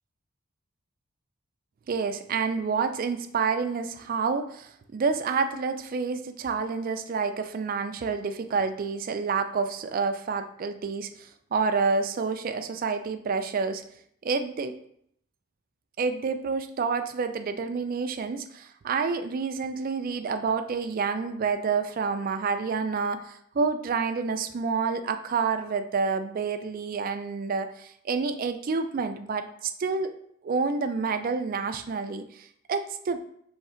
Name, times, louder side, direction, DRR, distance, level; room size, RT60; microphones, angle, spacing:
voice 1, 1.9-13.8 14.2-14.8 16.0-30.1 30.4-33.2, right 5 dB, 40° right, 8 dB, 0.3 m, -28 dB
3.6 x 3.1 x 4.3 m, 0.69 s
head